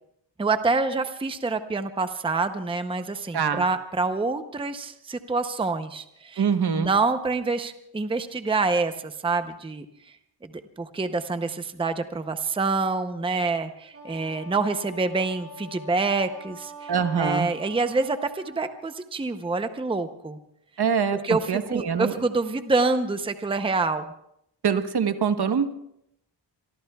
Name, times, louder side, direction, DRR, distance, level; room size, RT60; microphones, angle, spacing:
voice 1, 0.4-6.4 6.7-9.8 10.8-20.4 21.2-24.1, right 3 dB, 10° right, 9 dB, 0.6 m, -26 dB
voice 2, 3.3-3.6 6.4-6.9 16.9-17.5 20.8-22.1 24.6-25.7, right 6 dB, 60° right, 9 dB, 1.1 m, -24 dB
Wind instrument woodwind instrument, 13.9-18.8, equal, 35° right, 6.7 m, -44 dB
27.0 x 23.5 x 2.3 m, 0.77 s
wide cardioid pair, 160°, 43 cm